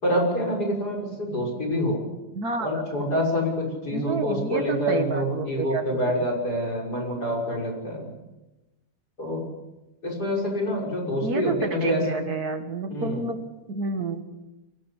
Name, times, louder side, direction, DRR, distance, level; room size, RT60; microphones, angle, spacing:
voice 1, 0.0-2.0 2.6-8.1 9.2-9.4 10.0-12.2 12.9-13.2, equal, 70° left, -1 dB, 6.8 m, -26 dB
voice 2, 2.3-2.7 3.9-5.9 6.2-6.3 11.2-13.4 13.7-14.2, right 4 dB, 65° right, 6 dB, 2.5 m, -29 dB
24.0 x 17.5 x 8.3 m, 1.0 s
omnidirectional pair, 1.8 m